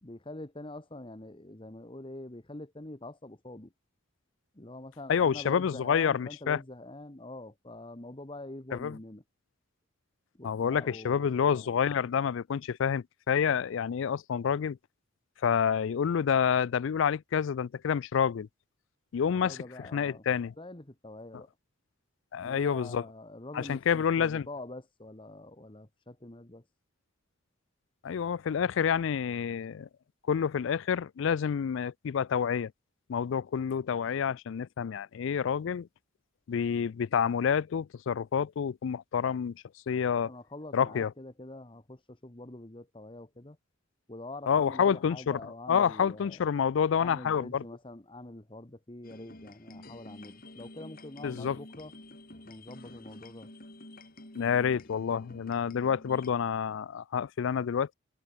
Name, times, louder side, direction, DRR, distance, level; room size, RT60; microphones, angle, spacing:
voice 1, 0.0-3.7 4.5-9.2 10.4-11.7 19.3-20.2 20.6-21.5 22.4-26.6 40.2-43.6 44.1-46.4 47.0-51.9 52.4-53.5, left 2 dB, 25° left, 1.4 m, -45 dB
voice 2, 5.1-6.6 8.7-9.0 10.4-14.8 15.4-18.5 19.1-19.6 19.9-20.5 22.3-23.0 23.5-24.5 28.0-29.9 30.3-32.7 33.1-35.9 36.5-39.5 39.9-40.3 40.7-41.1 44.5-45.4 45.7-47.6 51.2-51.6 54.4-57.9, left 7 dB, 65° left, 0.3 m, -28 dB
sound 1, 49.0-56.3, left 1 dB, 45° left, 3.5 m, -49 dB
head